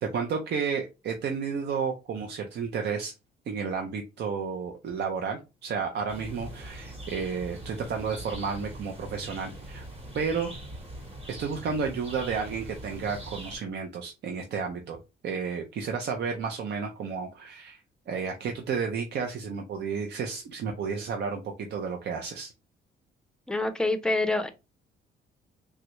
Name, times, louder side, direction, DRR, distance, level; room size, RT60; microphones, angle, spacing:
voice 1, 0.0-3.1 3.5-9.8 10.1-10.5 11.4-15.0 15.2-17.8 18.1-22.5, right 5 dB, 60° right, 0.6 m, -32 dB
sound 1, 6.1-13.6, right 1 dB, 30° right, 1.1 m, -42 dB
voice 2, 23.5-24.5, left 2 dB, 5° left, 0.5 m, -26 dB
3.2 x 2.4 x 2.9 m
cardioid pair, 90°, 20 cm